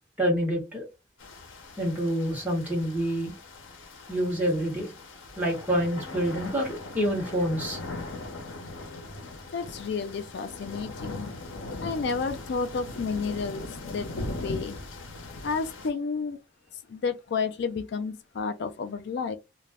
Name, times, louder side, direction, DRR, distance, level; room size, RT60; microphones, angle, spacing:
voice 1, 0.2-0.9 1.8-3.3 4.1-4.9 5.3-8.3, equal, 10° right, 1.1 m, -27 dB
sound 1, 1.2-15.9, left 2 dB, 85° left, 0.7 m, -40 dB
voice 2, 9.5-11.3 11.8-14.1 14.3-14.8 15.4-16.4 16.9-19.4, left 5 dB, 60° left, 0.3 m, -31 dB
2.3 x 2.1 x 3.3 m
head